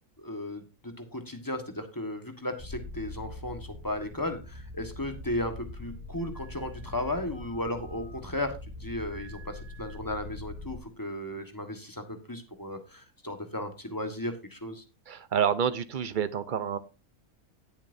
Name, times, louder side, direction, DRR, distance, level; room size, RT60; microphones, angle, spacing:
voice 1, 0.2-12.0 12.3-14.8, left 1 dB, 15° left, 6 dB, 1.5 m, -35 dB
sound 1, 2.6-10.8, left 2 dB, 25° right, 2.4 m, -43 dB
voice 2, 15.1-16.8, right 8 dB, 40° right, 14 dB, 0.8 m, -28 dB
18.0 x 7.3 x 2.7 m, 0.29 s
omnidirectional pair, 1.6 m